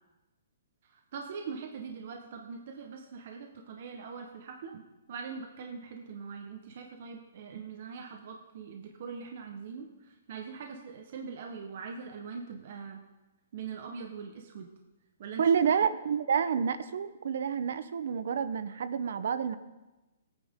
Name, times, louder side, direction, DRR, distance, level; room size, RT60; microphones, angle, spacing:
voice 1, 0.9-13.0 13.5-14.7 15.2-15.4, right 5 dB, 50° right, 3 dB, 1.1 m, -42 dB
voice 2, 15.4-19.6, right 7 dB, 65° right, 13 dB, 0.8 m, -28 dB
18.0 x 9.2 x 3.7 m, 1.1 s
hypercardioid pair, 155°, 0 cm